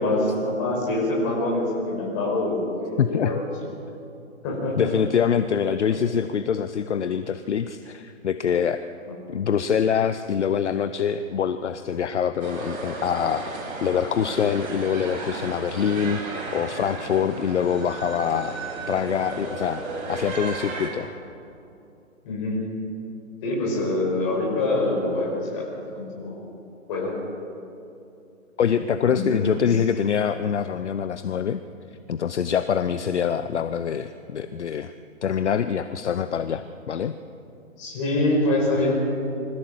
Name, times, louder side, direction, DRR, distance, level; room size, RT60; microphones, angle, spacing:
voice 1, 0.0-3.4 4.4-4.9 5.9-6.0 22.2-22.7 23.4-25.7 25.9-26.4 26.9-27.1 29.0-29.6 37.8-39.0, left 2 dB, 25° left, -2 dB, 5.5 m, -25 dB
voice 2, 3.0-3.4 4.8-8.8 9.3-16.2 16.5-18.6 18.9-19.8 20.1-21.1 28.6-31.6 32.1-34.9 35.2-37.2, left 7 dB, 55° left, 11 dB, 0.8 m, -25 dB
sound 1, 12.4-20.9, right 3 dB, 70° right, 6.7 m, -34 dB
24.5 x 15.5 x 7.7 m, 2.7 s
hypercardioid pair, 165°, 41 cm